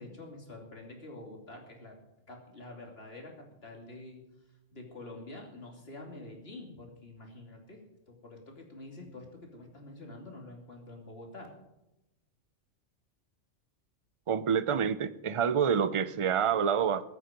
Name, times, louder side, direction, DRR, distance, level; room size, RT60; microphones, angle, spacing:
voice 1, 0.0-2.0 2.3-4.2 4.7-11.5, left 2 dB, 50° left, 1 dB, 3.1 m, -47 dB
voice 2, 14.3-17.0, right 7 dB, 40° right, 14 dB, 0.4 m, -27 dB
22.0 x 9.0 x 5.2 m, 0.92 s
omnidirectional pair, 1.4 m